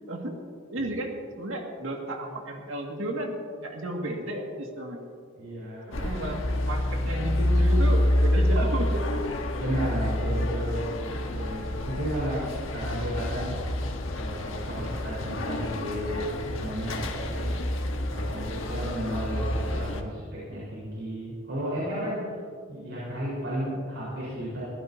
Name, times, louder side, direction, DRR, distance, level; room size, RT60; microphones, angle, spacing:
voice 1, 0.7-5.0 5.9-9.2, right 1 dB, 75° right, 1 dB, 2.2 m, -33 dB
voice 2, 5.3-6.0 9.6-12.4 12.7-13.5 14.1-17.5 18.1-22.3 22.7-24.6, equal, 60° right, -7 dB, 4.6 m, -33 dB
sound 1, 5.9-20.0, left 1 dB, 75° left, 1.4 m, -28 dB
22.0 x 15.5 x 2.8 m, 2.2 s
head